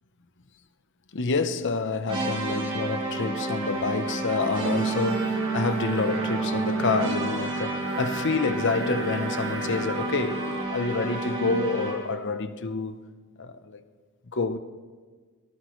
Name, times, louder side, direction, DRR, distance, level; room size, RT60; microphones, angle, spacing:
voice 1, 1.1-13.0 13.4-13.8 14.3-14.6, left 4 dB, 55° left, 0.8 m, -28 dB
sound 1, 2.1-12.2, right 3 dB, 25° right, 2.7 m, -30 dB
Singing, 4.5-10.7, right 4 dB, 65° right, 1.2 m, -38 dB
22.0 x 17.0 x 3.2 m
head